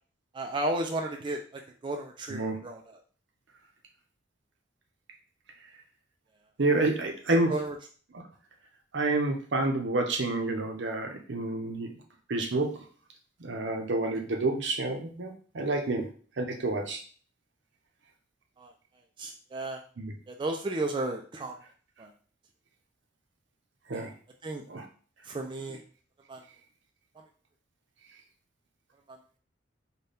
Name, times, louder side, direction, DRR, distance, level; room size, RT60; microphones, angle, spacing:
voice 1, 0.3-3.0 7.5-7.8 18.6-18.7 19.2-19.8 20.3-21.6 22.0-22.1 23.9-24.1 24.4-24.6 25.2-25.8 26.3-26.4 29.1-29.2, right 2 dB, 25° right, 2 dB, 0.3 m, -33 dB
voice 2, 6.6-7.5 8.1-8.2 8.9-11.9 12.3-12.8 13.4-16.0 16.4-17.0 20.0-20.1 23.9-24.1 24.7-24.8, right 2 dB, 70° right, 3 dB, 0.7 m, -29 dB
4.0 x 2.2 x 3.4 m, 0.42 s
head